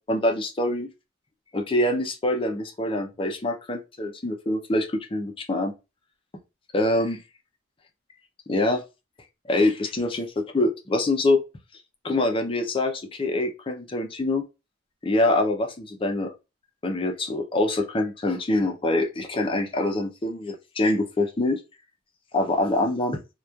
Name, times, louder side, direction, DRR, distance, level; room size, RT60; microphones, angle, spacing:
voice 1, 0.1-0.9 1.5-5.7 6.7-7.2 8.5-8.8 9.5-10.3 10.5-11.4 12.0-14.4 15.0-16.3 16.8-21.6 22.3-23.2, left 2 dB, 25° left, 4 dB, 0.4 m, -25 dB
2.9 x 2.2 x 2.3 m, 0.26 s
head